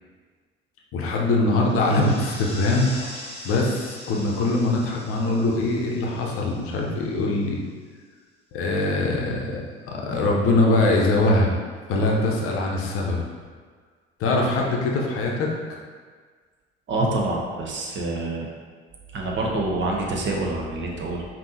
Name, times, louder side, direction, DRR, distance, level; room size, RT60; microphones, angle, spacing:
voice 1, 0.9-2.9 3.4-7.6 8.5-11.5 11.9-13.2 14.2-15.5, left 2 dB, 45° left, -1 dB, 0.7 m, -22 dB
sound 1, 1.5-7.3, left 1 dB, 20° left, 1.0 m, -41 dB
voice 2, 16.9-18.5 19.1-21.2, right 2 dB, 40° right, -1 dB, 0.8 m, -26 dB
5.3 x 2.7 x 2.8 m, 1.6 s
figure-of-eight pair, 55°, 31 cm